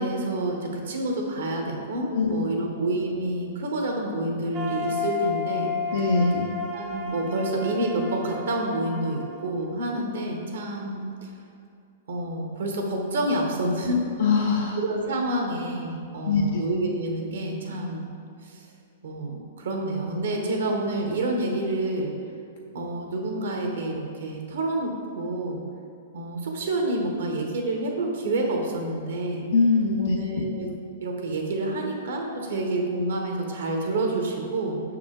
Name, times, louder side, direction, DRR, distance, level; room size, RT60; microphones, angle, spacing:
voice 1, 0.0-5.7 6.7-11.0 12.1-14.1 14.8-18.1 18.4-18.7 19.0-22.1 22.7-25.6 26.1-29.5 30.0-30.7 31.0-34.8, right 1 dB, 80° right, 1 dB, 0.9 m, -28 dB
voice 2, 2.1-2.5 5.9-6.5 14.2-14.8 16.2-16.6 29.5-30.6, left 4 dB, 80° left, -1 dB, 0.6 m, -23 dB
sound 1, 4.5-10.5, left 4 dB, 20° right, 0.6 m, -33 dB
5.6 x 4.8 x 3.7 m, 2.4 s
hypercardioid pair, 130°, 0 cm